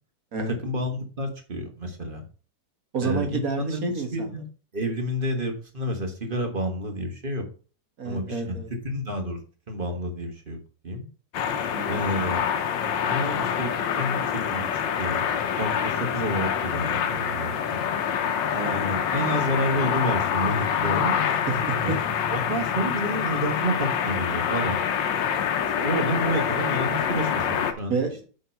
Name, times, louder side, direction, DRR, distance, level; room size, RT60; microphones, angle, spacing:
voice 1, 0.5-2.2 3.0-4.4 4.7-7.4 8.0-8.6 8.8-9.4 9.7-10.6 10.8-11.0 11.9-12.4 13.0-13.7 14.0-15.2 15.6-17.8 18.7-21.1 21.8-22.0 22.3-24.8 25.8-27.9, equal, 30° right, 4 dB, 1.4 m, -29 dB
voice 2, 2.9-4.3 8.0-8.7 11.7-12.0 18.5-18.7 21.5-22.0 27.9-28.2, right 4 dB, 50° right, 5 dB, 1.7 m, -29 dB
sound 1, 11.3-27.7, left 8 dB, 75° left, 1.6 m, -26 dB
8.3 x 3.8 x 5.8 m, 0.37 s
omnidirectional pair, 2.0 m